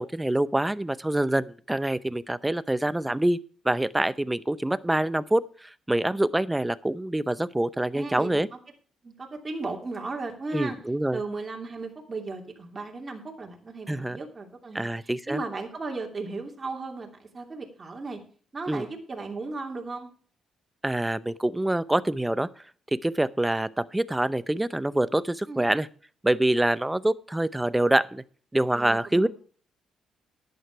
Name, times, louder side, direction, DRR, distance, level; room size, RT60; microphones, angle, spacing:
voice 1, 0.0-3.4 3.6-8.5 10.5-11.2 13.9-14.2 14.7-15.4 18.7-18.8 20.8-22.5 23.0-25.9 26.2-28.2 28.5-29.3, right 1 dB, 10° right, 16 dB, 0.6 m, -25 dB
voice 2, 7.9-8.6 9.0-10.8 11.1-18.2 18.5-20.1 25.5-25.7 28.7-29.3, right 3 dB, 30° right, 1 dB, 2.9 m, -36 dB
11.0 x 9.5 x 4.7 m, 0.43 s
cardioid pair, 90°, 0 cm